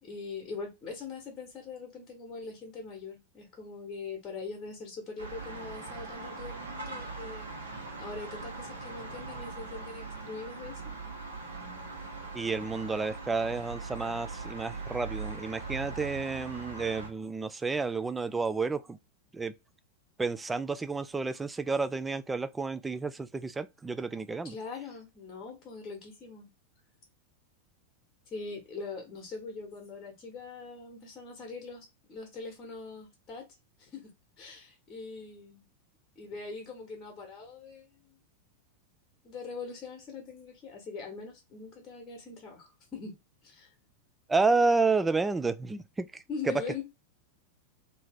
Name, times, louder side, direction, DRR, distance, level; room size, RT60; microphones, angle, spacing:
voice 1, 0.0-7.7 8.0-10.8 24.5-26.5 28.3-33.4 33.8-34.1 34.4-35.6 36.1-38.2 39.2-43.1 43.4-43.7 46.3-46.8, left 4 dB, 25° left, 1.1 m, -42 dB
sound 1, 5.2-17.1, right 3 dB, 75° right, 1.2 m, -41 dB
voice 2, 12.3-19.0 19.3-19.5 20.2-24.6 44.3-46.8, right 4 dB, 10° right, 0.3 m, -30 dB
2.8 x 2.7 x 3.4 m
figure-of-eight pair, 90°, 0 cm